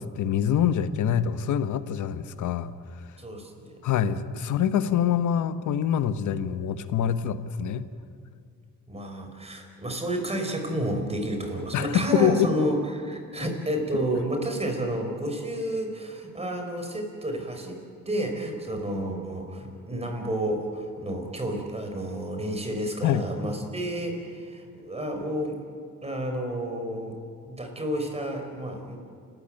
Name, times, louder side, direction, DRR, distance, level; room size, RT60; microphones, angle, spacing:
voice 1, 0.0-2.7 3.8-7.9 11.7-12.5 13.4-13.5 13.9-14.0 23.0-23.2, left 9 dB, 75° left, 11 dB, 1.2 m, -25 dB
voice 2, 3.2-3.7 8.9-17.8 18.1-25.6 26.0-27.2 27.5-29.0, right 1 dB, 20° right, 4 dB, 5.3 m, -30 dB
30.0 x 14.5 x 9.1 m, 2.2 s
cardioid pair, 90°, 30 cm